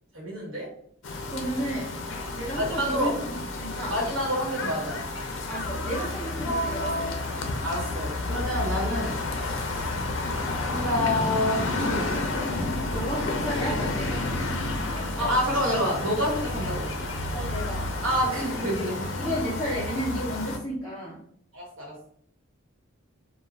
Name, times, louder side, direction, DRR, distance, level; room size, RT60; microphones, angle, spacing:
voice 1, 0.1-0.7 2.6-3.1 3.9-5.0 7.6-9.2 10.7-12.2 15.2-16.9 18.0-19.0 21.5-21.9, equal, 80° right, -3 dB, 1.1 m, -28 dB
sound 1, 1.0-20.6, left 2 dB, 65° left, 0.4 m, -31 dB
voice 2, 1.3-2.0 2.3-4.0 5.5-7.4 9.8-10.0 12.8-15.3 17.3-17.9 19.2-21.2, equal, ahead, -11 dB, 0.6 m, -33 dB
sound 2, 5.6-11.2, left 2 dB, 50° left, 0.8 m, -38 dB
2.3 x 2.1 x 3.2 m, 0.63 s
head